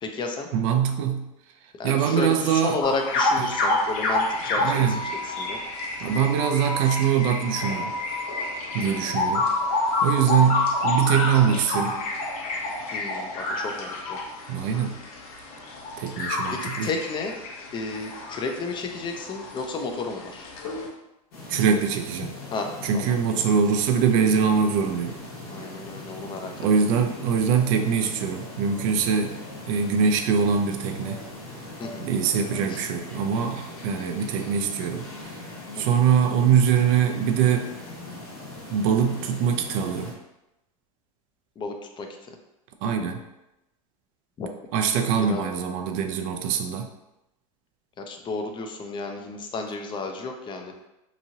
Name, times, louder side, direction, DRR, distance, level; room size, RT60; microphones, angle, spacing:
voice 1, 0.0-0.5 1.8-5.6 8.8-9.2 12.9-14.2 16.5-17.3 17.7-20.5 22.5-23.1 25.5-26.5 31.8-32.1 32.7-32.8 35.7-36.0 41.6-42.4 44.4-44.5 45.2-45.4 48.0-50.7, left 3 dB, 25° left, 4 dB, 0.5 m, -32 dB
voice 2, 0.5-1.3 1.8-2.8 4.5-5.0 6.0-7.9 8.7-9.5 10.0-12.0 14.5-15.0 16.0-16.9 21.5-22.3 22.8-25.1 26.6-29.4 29.7-31.2 32.0-35.4 35.8-37.7 38.7-40.1 42.8-43.2 44.7-46.9, right 7 dB, 65° right, 6 dB, 0.5 m, -23 dB
sound 1, 2.8-20.9, left 2 dB, 65° left, 0.8 m, -28 dB
sound 2, 21.3-40.1, left 2 dB, 85° left, 1.2 m, -40 dB
2.9 x 2.7 x 2.6 m, 0.91 s
hypercardioid pair, 105°, 18 cm